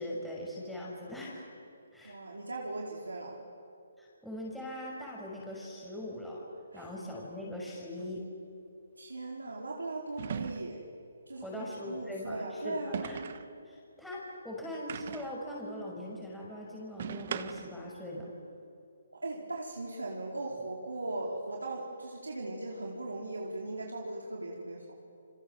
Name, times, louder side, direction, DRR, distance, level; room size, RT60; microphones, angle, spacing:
voice 1, 0.0-1.5 1.9-2.2 4.0-6.4 6.7-8.2 11.4-13.2 13.7-18.3, left 1 dB, ahead, -5 dB, 6.1 m, -41 dB
voice 2, 2.0-3.4 6.7-6.8 9.0-10.8 11.3-13.0 19.2-24.9, right 2 dB, 90° right, -2 dB, 4.7 m, -38 dB
sound 1, 8.0-8.1 10.2-10.9 12.9-13.5 14.9-15.4 17.0-17.8, right 7 dB, 50° right, 1.4 m, -39 dB
30.0 x 25.5 x 7.5 m, 2.7 s
figure-of-eight pair, 145°, 0 cm